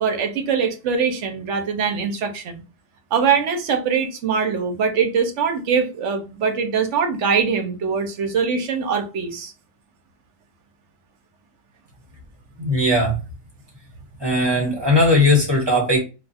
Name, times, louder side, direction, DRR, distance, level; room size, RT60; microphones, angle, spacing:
voice 1, 0.0-2.6 3.1-9.5, right 6 dB, 70° right, 0.9 m, -22 dB
voice 2, 12.6-13.2 14.2-16.0, left 1 dB, 20° right, 1.2 m, -18 dB
2.4 x 2.3 x 4.0 m
omnidirectional pair, 1.3 m